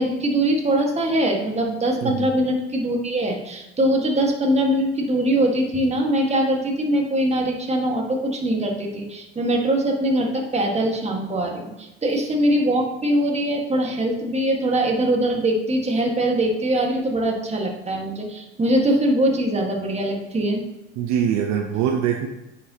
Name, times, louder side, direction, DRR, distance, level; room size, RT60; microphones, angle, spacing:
voice 1, 0.0-20.6, right 1 dB, 20° right, 1 dB, 1.7 m, -22 dB
voice 2, 21.0-22.3, right 9 dB, 50° right, 2 dB, 0.8 m, -23 dB
9.6 x 5.6 x 2.9 m, 0.96 s
hypercardioid pair, 85°, 35 cm